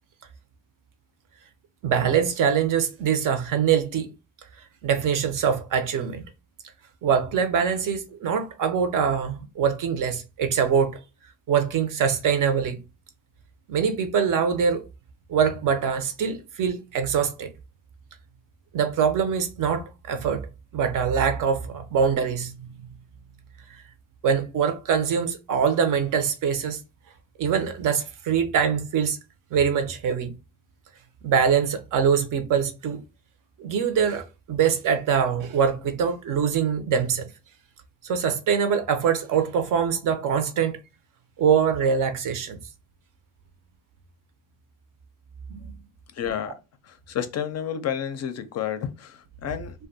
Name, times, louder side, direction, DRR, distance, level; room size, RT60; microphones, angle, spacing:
voice 1, 1.8-4.1 4.8-6.2 7.0-11.0 11.5-12.8 13.7-14.8 15.3-17.5 18.7-20.5 20.7-22.5 24.2-26.8 27.4-29.2 29.5-30.3 31.2-33.0 33.6-37.2 38.0-40.8 41.4-42.6 45.5-45.7, right 7 dB, 60° right, 0.6 m, -23 dB
voice 2, 46.2-46.5 47.1-49.7, left 9 dB, 45° left, 0.4 m, -30 dB
2.5 x 2.2 x 2.6 m
cardioid pair, 120°, 37 cm